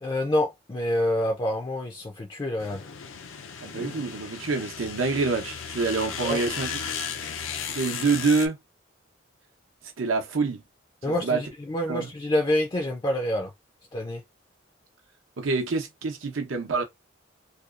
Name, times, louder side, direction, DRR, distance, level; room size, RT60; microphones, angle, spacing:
voice 1, 0.0-2.8 6.2-6.4 11.0-13.5 13.9-14.2, left 1 dB, 25° left, 0.3 m, -27 dB
sound 1, 2.6-8.5, left 7 dB, 85° left, 0.5 m, -35 dB
voice 2, 3.6-6.8 7.7-8.6 10.0-10.6 11.0-11.4 11.9-12.1 15.4-16.8, right 4 dB, 85° right, 0.7 m, -26 dB
2.6 x 2.3 x 2.3 m
head